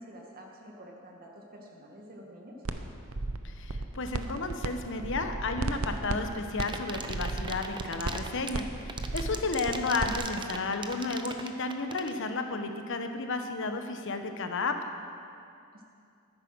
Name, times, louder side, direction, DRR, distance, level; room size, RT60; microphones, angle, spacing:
voice 1, 0.0-2.6 9.2-9.5 15.7-15.9, equal, 45° right, 0 dB, 1.9 m, -49 dB
sound 1, 2.7-2.8 3.1-4.7 5.0-10.2, right 3 dB, 85° right, 0.8 m, -34 dB
voice 2, 3.4-14.8, left 3 dB, 65° left, 6 dB, 1.1 m, -32 dB
sound 2, 6.6-12.2, right 5 dB, 20° right, 0.7 m, -38 dB
13.5 x 9.9 x 6.2 m, 2.4 s
head